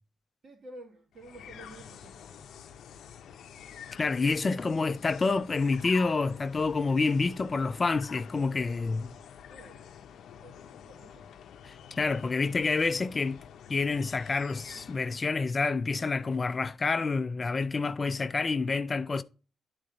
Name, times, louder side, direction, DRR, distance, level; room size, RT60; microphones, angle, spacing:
voice 1, 0.4-2.5 9.5-9.9 10.4-11.3, right 1 dB, 50° right, 1.9 m, -51 dB
sound 1, 1.1-15.4, left 8 dB, 70° left, 0.6 m, -48 dB
voice 2, 3.9-9.1 11.6-13.4 13.7-19.2, left 4 dB, 30° left, 0.4 m, -28 dB
10.0 x 3.8 x 3.9 m
cardioid pair, 125°, 0 cm